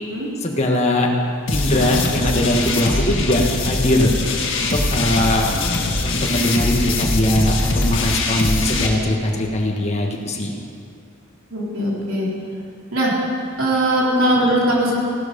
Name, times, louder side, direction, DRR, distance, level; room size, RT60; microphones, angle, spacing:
voice 1, 0.4-1.1 1.5-4.1 4.5-5.5 6.0-10.6, left 1 dB, 35° left, 0 dB, 1.4 m, -20 dB
sound 1, 1.5-8.9, left 2 dB, 65° left, 1.7 m, -22 dB
voice 2, 8.4-8.8 11.5-12.3 12.9-13.1 13.6-15.0, right 1 dB, 75° right, -4 dB, 3.6 m, -20 dB
15.5 x 12.0 x 5.2 m, 2.3 s
head